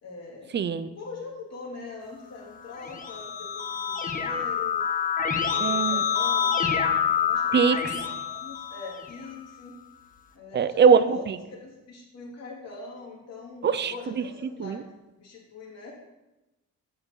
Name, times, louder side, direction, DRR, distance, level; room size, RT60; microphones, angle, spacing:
voice 1, 0.0-0.6 0.9-4.8 5.4-9.7 10.3-14.8 15.2-15.9, left 4 dB, 60° left, -3 dB, 2.6 m, -42 dB
voice 2, 0.5-0.9 5.6-6.0 7.5-7.9 10.5-11.4 13.6-13.9 14.6-14.8, right 6 dB, 35° right, 13 dB, 0.5 m, -21 dB
Keyboard (musical), 2.7-9.3, left 7 dB, 25° left, 1.0 m, -27 dB
7.1 x 5.3 x 5.6 m, 1.0 s
cardioid pair, 90°, 30 cm